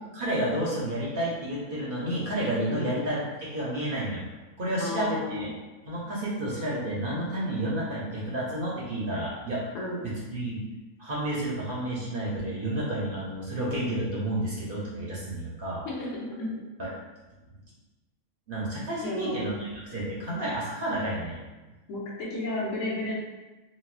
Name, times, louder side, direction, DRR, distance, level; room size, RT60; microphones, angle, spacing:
voice 1, 0.1-4.2 4.6-5.5 5.9-9.6 10.0-10.6 11.0-15.8 16.8-16.9 18.5-21.4, right 1 dB, 50° right, -6 dB, 0.7 m, -30 dB
voice 2, 4.8-5.5 9.7-10.0 15.8-16.6 19.0-19.5 21.9-23.2, left 1 dB, 65° left, -4 dB, 1.1 m, -33 dB
4.1 x 2.1 x 2.4 m, 1.1 s
omnidirectional pair, 1.5 m